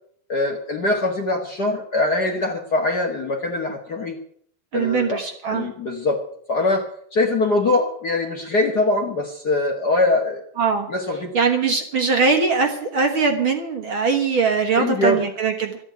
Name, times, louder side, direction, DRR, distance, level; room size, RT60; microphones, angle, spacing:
voice 1, 0.3-4.1 4.7-5.2 5.5-6.2 6.5-10.4 10.9-11.3 14.8-15.2, left 2 dB, 40° left, 2 dB, 1.6 m, -22 dB
voice 2, 4.7-5.7 10.6-10.9 11.3-15.8, right 5 dB, 50° right, 4 dB, 1.9 m, -21 dB
13.0 x 9.0 x 9.3 m, 0.63 s
omnidirectional pair, 3.4 m